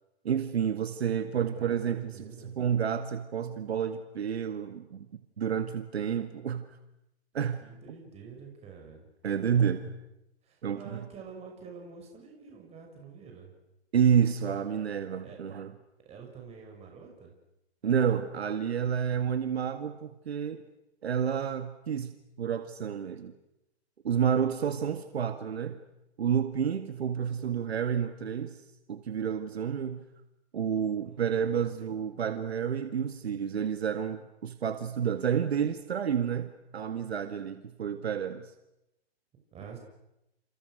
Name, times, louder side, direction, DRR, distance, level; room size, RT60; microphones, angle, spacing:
voice 1, 0.2-5.1 5.4-6.6 7.3-7.6 9.2-9.8 10.6-11.0 13.9-15.7 17.8-20.6 21.0-22.1 22.4-23.3 24.0-25.8 26.2-28.6 28.9-30.0 30.5-38.5, right 8 dB, 70° right, 9 dB, 2.0 m, -29 dB
voice 2, 1.3-2.5 7.6-9.9 10.4-13.5 15.2-15.4 16.0-17.3 31.0-31.7 39.5-39.8, right 6 dB, 20° right, 2 dB, 6.1 m, -48 dB
29.0 x 29.0 x 6.4 m, 0.89 s
hypercardioid pair, 135°, 33 cm